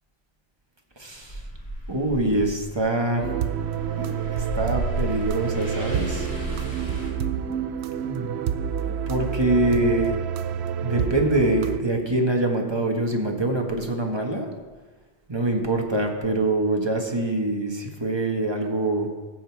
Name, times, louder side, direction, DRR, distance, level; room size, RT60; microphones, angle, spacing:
voice 1, 1.0-1.4 1.9-3.3 3.9-6.3 7.5-7.6 8.0-8.4 9.1-10.2 10.8-14.5 15.3-19.1, right 2 dB, 25° right, 2 dB, 1.5 m, -24 dB
sound 1, 1.1-7.1, equal, 35° left, 3.9 m, -34 dB
sound 2, 3.2-11.8, right 8 dB, 80° right, 0.9 m, -28 dB
15.5 x 6.8 x 4.7 m, 1.3 s
omnidirectional pair, 1.1 m